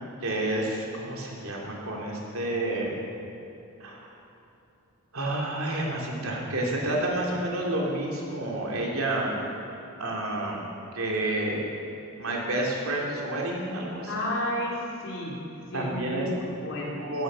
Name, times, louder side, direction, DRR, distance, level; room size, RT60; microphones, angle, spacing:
voice 1, 0.2-3.0 3.8-4.1 5.1-9.4 10.0-10.6 10.9-11.7 12.2-14.1 15.7-16.2 17.0-17.2, right 1 dB, 80° right, -2 dB, 3.3 m, -29 dB
voice 2, 14.1-15.4 15.7-17.1, left 1 dB, 65° left, -3 dB, 3.4 m, -32 dB
15.5 x 13.5 x 5.6 m, 2.8 s
head